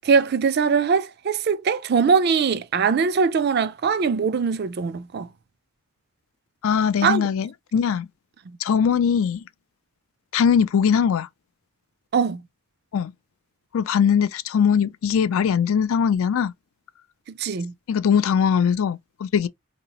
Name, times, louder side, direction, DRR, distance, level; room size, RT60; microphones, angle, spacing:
voice 1, 0.0-5.3 7.0-7.3 8.5-8.6 12.1-12.4 17.4-17.7, right 5 dB, 45° right, 0.4 m, -21 dB
voice 2, 6.6-8.1 8.6-9.4 10.3-11.3 12.9-13.1 13.7-16.5 17.9-19.5, left 7 dB, 70° left, 0.3 m, -21 dB
3.8 x 2.9 x 2.8 m
head